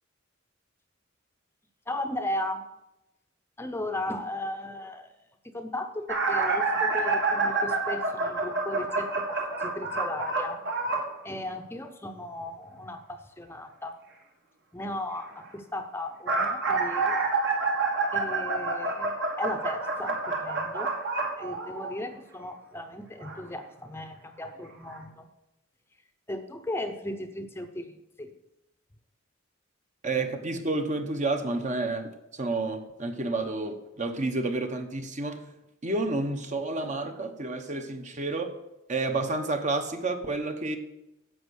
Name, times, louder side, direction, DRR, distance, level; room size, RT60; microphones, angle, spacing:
voice 1, 1.9-2.6 3.6-5.1 5.5-10.6 11.2-14.0 14.7-17.2 18.1-20.9 21.4-25.3 26.3-28.3, left 1 dB, 10° left, 7 dB, 0.7 m, -36 dB
sound 1, 6.1-11.1 16.0-22.1 23.2-23.4 24.4-24.5 24.9-25.0, right 3 dB, 60° right, 1.9 m, -28 dB
voice 2, 30.0-35.4 35.8-38.5 38.9-40.8, right 2 dB, 35° right, 7 dB, 1.0 m, -30 dB
10.5 x 7.6 x 6.3 m, 0.92 s
head